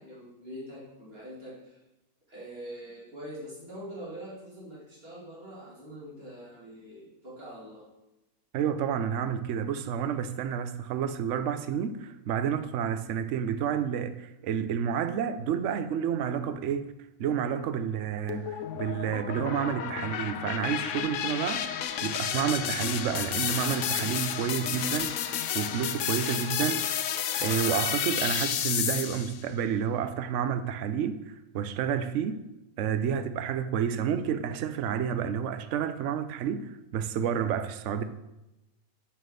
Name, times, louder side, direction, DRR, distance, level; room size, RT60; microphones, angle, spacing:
voice 1, 0.0-1.8 2.3-7.8, equal, 40° right, 3.3 m, -44 dB
voice 2, 8.5-16.9 17.2-21.7 22.0-27.0 27.4-31.2 31.5-32.5 32.8-38.0, right 8 dB, 65° right, 0.9 m, -30 dB
sound 1, 18.3-29.4, left 9 dB, 70° left, 0.8 m, -31 dB
7.3 x 5.7 x 6.3 m
omnidirectional pair, 1.5 m